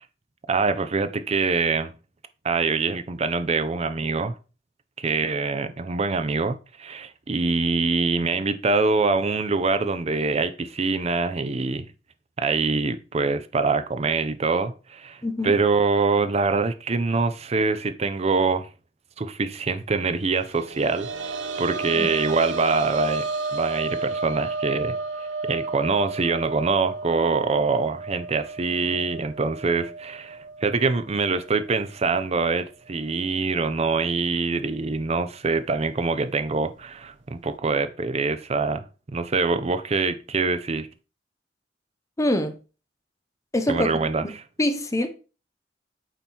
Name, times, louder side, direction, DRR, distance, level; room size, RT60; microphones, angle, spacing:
voice 1, 0.5-1.9 2.4-4.3 5.0-11.9 12.4-18.7 19.2-23.3 23.5-24.9 25.5-40.9 43.7-44.2, right 4 dB, 35° right, 0.5 m, -24 dB
voice 2, 15.2-15.6 21.9-22.1 42.2-42.6 43.5-43.9 44.2-44.3 44.6-45.1, left 1 dB, 15° left, 0.6 m, -24 dB
sound 1, 20.4-31.9 32.2-32.3 33.8-33.9, right 3 dB, 75° right, 0.6 m, -32 dB
8.9 x 3.0 x 4.3 m
head